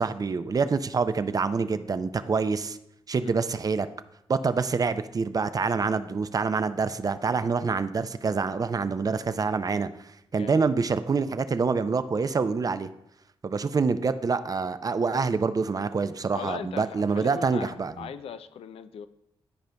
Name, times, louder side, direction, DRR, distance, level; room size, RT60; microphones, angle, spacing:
voice 1, 0.0-2.8 3.1-3.9 4.3-9.9 10.3-12.9 13.4-18.1, right 4 dB, 40° right, 12 dB, 0.4 m, -26 dB
voice 2, 10.4-10.8 16.3-19.1, left 8 dB, 80° left, 12 dB, 0.4 m, -39 dB
12.0 x 5.0 x 2.2 m, 0.82 s
cardioid pair, 65°, 10 cm